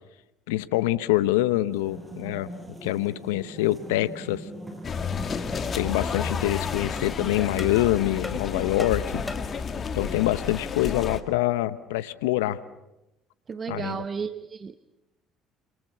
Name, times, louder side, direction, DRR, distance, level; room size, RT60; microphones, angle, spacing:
voice 1, 0.5-2.5 2.8-4.4 5.7-9.2 9.9-12.6 13.7-14.0, left 15 dB, 80° left, 15 dB, 1.1 m, -25 dB
sound 1, 1.5-10.5, right 1 dB, 15° right, 6.5 m, -42 dB
sound 2, 4.8-11.2, left 6 dB, 40° left, 2.2 m, -31 dB
sound 3, 4.9-5.0 5.5-5.7 6.2-6.3 7.0-7.1 7.6-7.8 8.2-9.6, left 3 dB, 20° left, 3.5 m, -39 dB
voice 2, 13.5-14.8, right 5 dB, 40° right, 11 dB, 1.1 m, -33 dB
28.5 x 27.0 x 6.8 m, 0.92 s
hypercardioid pair, 65°, 0 cm